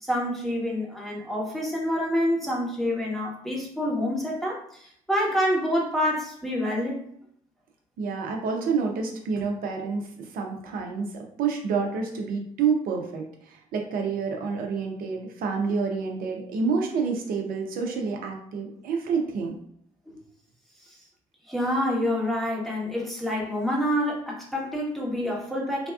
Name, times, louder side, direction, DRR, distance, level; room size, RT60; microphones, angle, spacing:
voice 1, 0.0-7.0 21.5-25.9, equal, ahead, -4 dB, 1.0 m, -27 dB
voice 2, 8.0-19.5, right 5 dB, 55° right, 2 dB, 0.6 m, -28 dB
3.3 x 2.3 x 2.4 m, 0.67 s
figure-of-eight pair, 50°, 18 cm